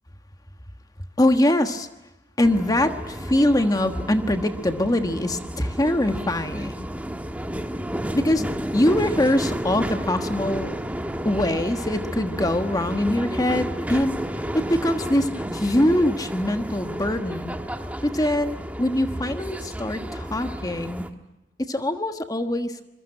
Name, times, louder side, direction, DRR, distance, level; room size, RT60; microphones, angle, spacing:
voice 1, 1.2-1.9 2.4-6.9 8.1-8.4 8.7-10.8 11.2-14.2 14.5-17.6 18.0-21.1 21.6-22.8, left 1 dB, 20° left, 7 dB, 1.3 m, -23 dB
sound 1, 2.4-21.1, equal, 10° right, 1.4 m, -32 dB
26.5 x 22.5 x 8.9 m, 1.0 s
head